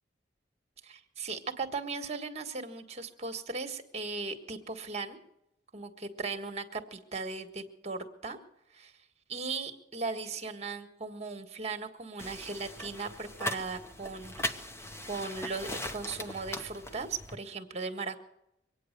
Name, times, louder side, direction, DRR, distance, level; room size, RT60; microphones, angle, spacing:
voice 1, 0.8-5.2 5.7-8.4 8.7-8.9 9.3-14.6 15.1-18.2, right 4 dB, 35° right, 7 dB, 1.5 m, -38 dB
sound 1, 12.2-17.4, left 1 dB, 15° left, 0.9 m, -39 dB
24.0 x 9.2 x 6.7 m, 0.84 s
head